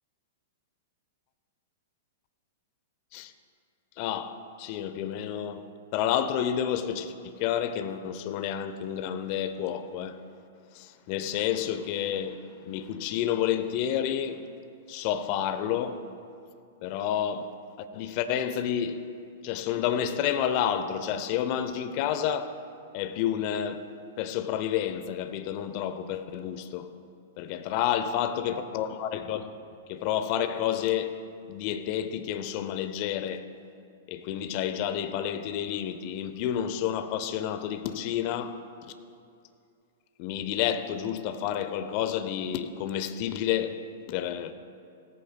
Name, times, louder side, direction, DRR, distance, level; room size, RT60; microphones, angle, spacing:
voice 1, 4.0-5.6 5.9-10.2 10.7-14.4 14.9-16.0 16.8-17.5 17.9-19.0 19.4-22.5 22.9-23.9 24.2-26.9 27.4-29.5 29.9-31.2 31.5-33.5 34.1-38.9 40.2-43.8 44.1-44.5, left 9 dB, 45° left, 0.8 m, -30 dB
17.0 x 14.0 x 2.3 m
figure-of-eight pair, 105°, 0 cm